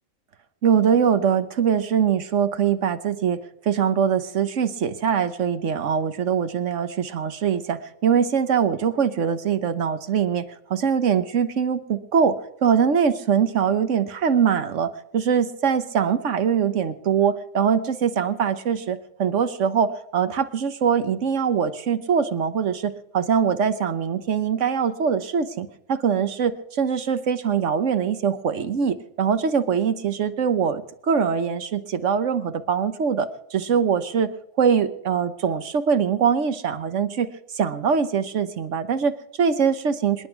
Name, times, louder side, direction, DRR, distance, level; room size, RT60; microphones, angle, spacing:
voice 1, 0.6-3.4 3.6-12.4 12.6-34.3 34.6-37.3 37.5-40.3, right 7 dB, 70° right, 11 dB, 1.4 m, -22 dB
26.5 x 9.9 x 4.7 m, 0.76 s
omnidirectional pair, 1.3 m